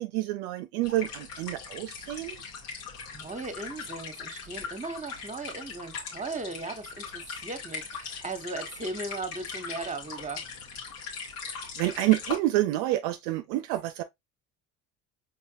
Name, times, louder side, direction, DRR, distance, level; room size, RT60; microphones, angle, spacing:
voice 1, 0.0-2.4 11.5-14.0, right 16 dB, 65° right, 0.6 m, -28 dB
sound 1, 0.8-12.4, left 5 dB, 80° left, 2.2 m, -40 dB
voice 2, 3.1-10.4, right 3 dB, 15° right, 1.3 m, -37 dB
5.5 x 3.8 x 2.5 m
hypercardioid pair, 65°, 44 cm